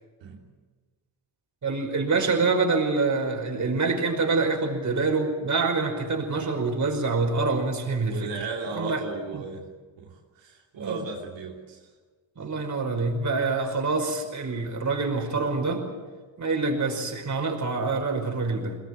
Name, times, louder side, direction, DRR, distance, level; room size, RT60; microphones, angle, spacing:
voice 1, 1.6-8.3 8.7-9.0 9.3-9.5 10.8-11.0 12.4-15.9 16.4-18.8, right 3 dB, 40° right, 2 dB, 5.5 m, -26 dB
voice 2, 8.0-9.7 10.0-11.9, right 4 dB, 90° right, -1 dB, 3.0 m, -36 dB
22.5 x 19.0 x 9.0 m, 1.4 s
cardioid pair, 90°, 44 cm